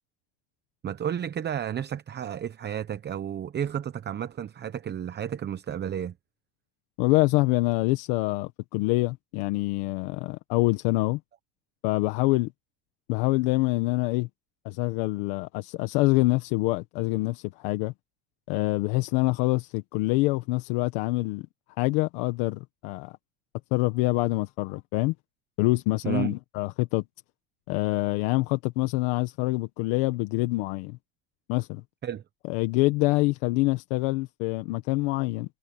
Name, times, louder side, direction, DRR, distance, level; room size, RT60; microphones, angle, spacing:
voice 1, 0.8-6.1 26.0-26.3 32.0-32.2, right 9 dB, 35° right, 0.9 m, -32 dB
voice 2, 7.0-11.2 11.8-12.5 13.1-14.3 14.6-17.9 18.5-21.5 21.8-23.1 23.7-25.1 25.6-27.0 27.7-31.0 31.5-31.8 32.4-35.6, left 21 dB, 85° left, 1.4 m, -26 dB
supercardioid pair, 100°, 30 cm